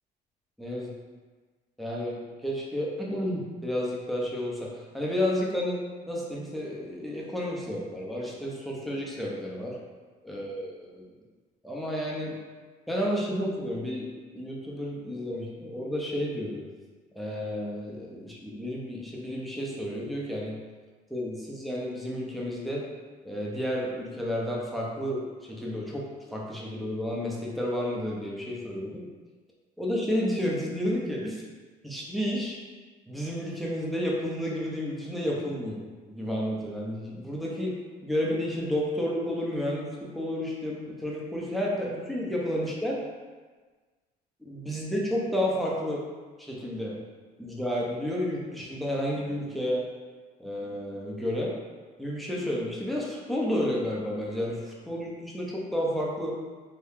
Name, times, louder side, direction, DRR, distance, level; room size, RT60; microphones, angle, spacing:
voice 1, 0.6-0.9 1.8-5.8 6.1-9.8 10.2-11.0 11.6-12.3 12.9-14.1 14.3-16.6 17.2-20.6 21.1-22.8 23.2-29.0 29.8-31.4 31.8-32.6 33.1-37.8 38.0-43.0 44.4-46.1 46.4-47.0 47.4-49.8 50.4-51.5 52.0-56.4, equal, ahead, -4 dB, 0.6 m, -31 dB
2.8 x 2.2 x 3.5 m, 1.4 s
cardioid pair, 110°, 17 cm